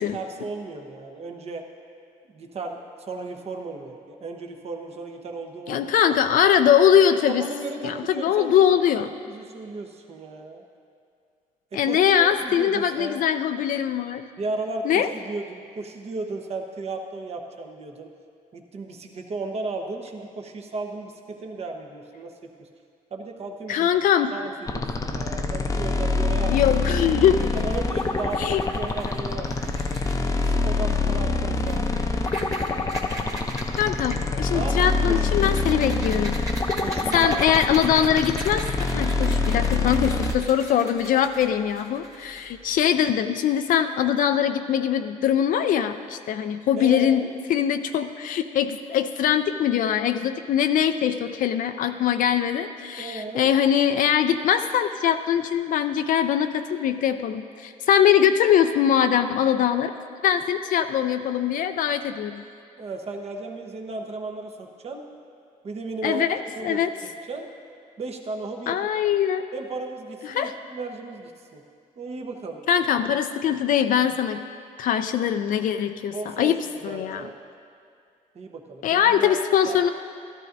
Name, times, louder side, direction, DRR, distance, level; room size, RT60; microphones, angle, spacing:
voice 1, 0.0-1.7 2.3-5.9 7.3-8.8 9.3-10.6 11.7-13.2 14.4-18.1 18.5-22.7 23.1-23.9 24.3-26.5 27.5-30.0 30.4-32.0 34.5-35.6 36.8-37.4 46.8-47.3 53.0-53.5 62.8-65.0 65.6-66.2 66.5-67.5 68.0-68.9 69.5-71.6 72.0-72.7 76.1-77.5 78.3-79.3 79.6-79.8, right 3 dB, 45° right, 3 dB, 1.0 m, -35 dB
voice 2, 5.7-7.4 7.8-9.1 11.7-14.2 14.8-15.1 23.7-24.3 26.5-27.4 28.4-28.6 33.8-36.4 37.1-38.7 38.9-47.2 47.5-59.9 60.2-62.4 66.0-66.9 68.7-69.4 70.3-70.5 72.7-74.4 74.8-76.6 76.8-77.2 78.8-79.9, left 9 dB, 70° left, 8 dB, 0.4 m, -22 dB
sound 1, 24.7-40.3, left 3 dB, 20° left, 0.6 m, -25 dB
sound 2, 26.5-42.8, right 1 dB, 25° right, 1.9 m, -41 dB
13.5 x 13.0 x 2.6 m, 2.3 s
cardioid pair, 95°, 15 cm